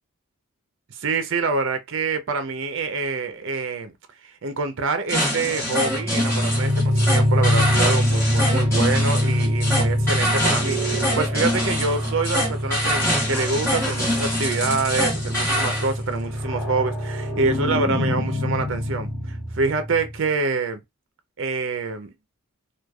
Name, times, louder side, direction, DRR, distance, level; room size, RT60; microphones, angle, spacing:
voice 1, 1.0-3.9 4.2-20.8 21.4-22.1, right 4 dB, 60° right, 0.5 m, -26 dB
sound 1, 5.1-15.9, left 1 dB, 10° left, 1.3 m, -25 dB
sound 2, 5.6-20.2, equal, 5° right, 1.2 m, -24 dB
3.1 x 2.3 x 2.2 m
head